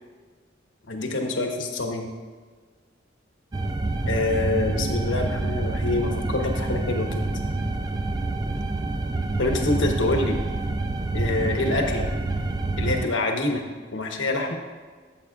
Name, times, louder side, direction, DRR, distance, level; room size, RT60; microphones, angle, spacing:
voice 1, 0.9-2.1 4.0-7.2 9.4-10.4 11.1-12.1 12.8-14.6, left 2 dB, 90° left, 3 dB, 1.1 m, -26 dB
sound 1, 3.5-13.1, right 2 dB, 20° right, 0.4 m, -27 dB
13.5 x 7.4 x 2.4 m, 1.5 s
head